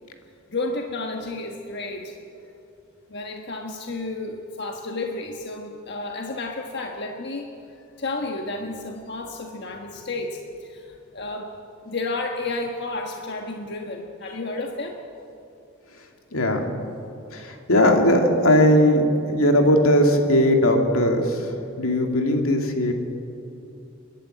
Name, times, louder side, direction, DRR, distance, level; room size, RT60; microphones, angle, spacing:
voice 1, 0.5-2.1 3.1-7.5 8.0-11.5 11.8-15.0, left 2 dB, 50° left, 2 dB, 1.5 m, -31 dB
voice 2, 16.3-16.6 17.3-21.4 21.8-22.9, left 1 dB, 80° left, 3 dB, 2.6 m, -19 dB
30.0 x 11.5 x 9.1 m, 2.8 s
head